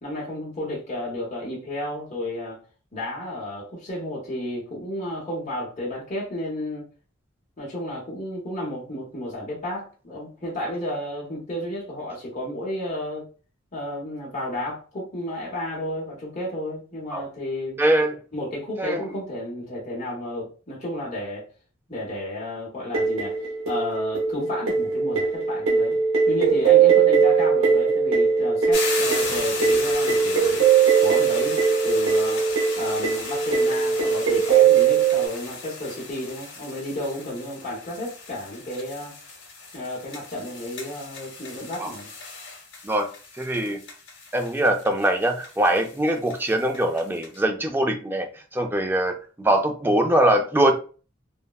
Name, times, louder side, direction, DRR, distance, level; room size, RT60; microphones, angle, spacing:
voice 1, 0.0-2.6 2.9-6.8 7.6-13.2 13.7-17.8 18.3-21.4 21.9-23.4 23.6-26.0 26.3-30.6 31.0-32.4 32.8-39.1 39.7-42.1, left 1 dB, 35° left, 0.9 m, -32 dB
voice 2, 17.8-18.2 18.8-19.0 41.8-41.9 42.8-43.1 43.4-43.8 44.3-48.3 48.5-50.7, right 1 dB, 10° right, 0.3 m, -22 dB
sound 1, 22.9-35.3, right 6 dB, 80° right, 0.7 m, -20 dB
sound 2, 28.7-47.4, left 3 dB, 60° left, 0.9 m, -36 dB
3.3 x 2.1 x 2.3 m
head